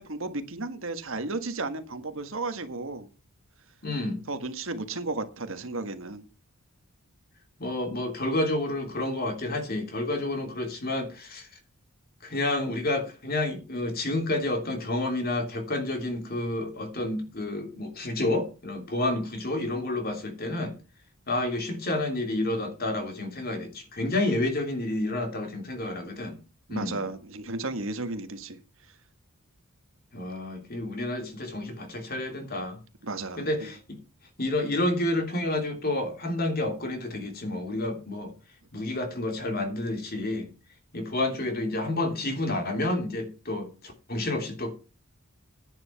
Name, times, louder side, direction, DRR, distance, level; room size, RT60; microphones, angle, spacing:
voice 1, 0.0-3.1 4.3-6.2 26.7-28.6 33.0-33.5, right 3 dB, 60° right, 1.6 m, -33 dB
voice 2, 3.8-4.2 7.6-11.5 12.2-20.8 21.3-26.4 26.7-27.0 30.1-32.8 33.4-34.0 34.4-38.3 38.7-40.5 40.9-44.7, left 2 dB, 45° left, 3.1 m, -29 dB
10.0 x 9.1 x 5.8 m
head